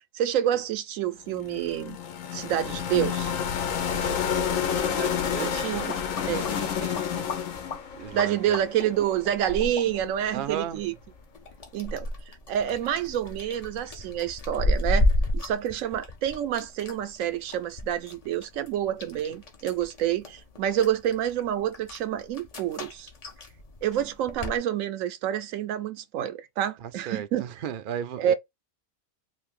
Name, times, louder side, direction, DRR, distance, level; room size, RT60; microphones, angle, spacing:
voice 1, 0.1-2.0 2.3-3.3 5.4-6.0 6.3-6.5 8.1-10.9 11.7-12.1 12.5-15.1 15.3-23.1 23.8-27.4 28.2-28.3, right 10 dB, 85° right, 1.0 m, -28 dB
sound 1, 1.3-9.3, left 8 dB, 85° left, 1.0 m, -30 dB
voice 2, 4.8-5.9 6.2-7.3 7.9-8.6 10.3-10.8 26.8-28.3, right 9 dB, 60° right, 0.5 m, -36 dB
sound 2, 5.5-24.6, left 1 dB, 40° left, 0.6 m, -33 dB
2.6 x 2.6 x 3.6 m
omnidirectional pair, 1.4 m